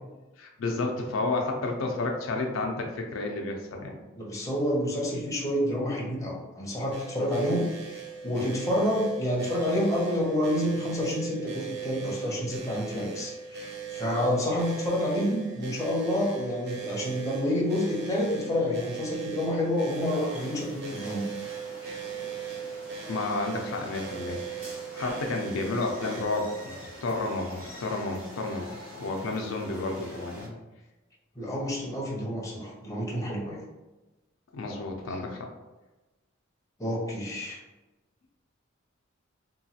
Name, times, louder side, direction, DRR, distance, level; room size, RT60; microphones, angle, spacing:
voice 1, 0.4-4.0 7.2-7.3 23.1-30.6 34.5-35.5, left 2 dB, 80° left, 2 dB, 0.4 m, -31 dB
voice 2, 4.2-21.3 31.4-33.6 34.7-35.2 36.8-37.6, left 1 dB, 15° left, -4 dB, 0.7 m, -29 dB
sound 1, 6.9-26.3, right 7 dB, 55° right, 0.6 m, -39 dB
sound 2, 19.9-30.5, equal, 85° right, 1.1 m, -45 dB
3.0 x 2.3 x 2.7 m, 1.1 s
head